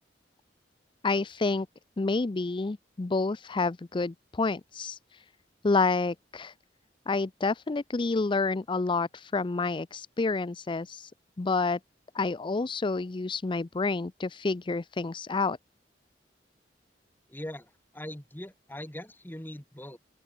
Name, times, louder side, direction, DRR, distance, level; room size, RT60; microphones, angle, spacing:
voice 1, 1.0-1.7 2.0-5.2 5.6-6.5 7.1-11.1 11.4-11.8 12.1-15.6, left 3 dB, 30° left, 0.5 m, -29 dB
voice 2, 17.3-20.0, left 1 dB, 10° left, 2.0 m, -41 dB
open air
head